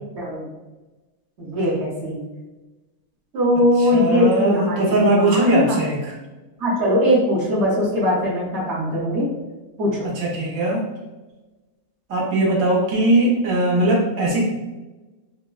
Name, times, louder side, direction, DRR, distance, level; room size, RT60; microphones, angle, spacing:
voice 1, 0.2-0.5 1.4-2.2 3.3-5.8 6.6-9.3 9.8-10.1, left 1 dB, 60° right, -5 dB, 1.0 m, -20 dB
voice 2, 3.8-6.1 10.0-10.9 12.1-14.4, right 1 dB, 85° right, -3 dB, 1.1 m, -20 dB
3.1 x 2.1 x 2.3 m, 1.1 s
omnidirectional pair, 1.4 m